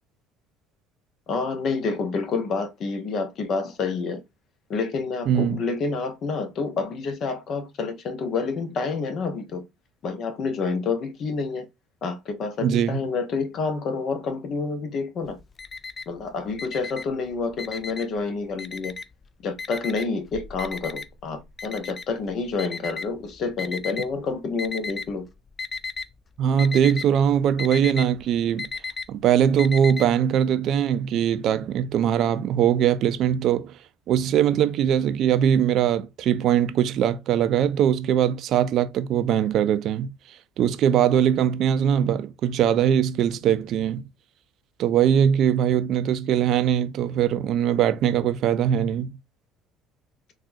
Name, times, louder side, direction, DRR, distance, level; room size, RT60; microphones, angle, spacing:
voice 1, 1.3-4.2 4.7-9.6 10.0-11.7 12.0-15.4 16.1-19.0 19.4-25.3, left 4 dB, 55° left, 0.8 m, -28 dB
voice 2, 5.3-5.6 12.6-13.0 26.4-28.7 29.1-33.8 34.1-44.1 44.8-49.1, right 9 dB, 60° right, 0.4 m, -21 dB
Alarm, 15.3-16.2 16.5-18.2 18.6-19.2 19.6-24.1 24.6-25.2 25.5-26.1 26.4-30.1, left 4 dB, 35° left, 0.4 m, -34 dB
3.6 x 2.4 x 2.6 m
hypercardioid pair, 65°, 0 cm